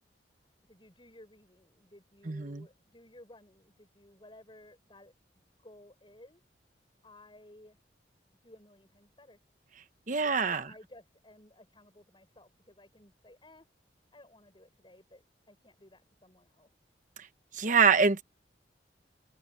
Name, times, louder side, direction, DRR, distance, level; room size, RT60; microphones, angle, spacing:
voice 1, 0.7-5.1 5.6-6.4 7.0-7.8 8.4-9.4 10.2-13.7 14.1-16.7, left 1 dB, 25° left, 6.7 m, -56 dB
voice 2, 2.3-2.6 10.1-10.7 17.5-18.2, right 5 dB, 45° right, 1.0 m, -25 dB
open air
head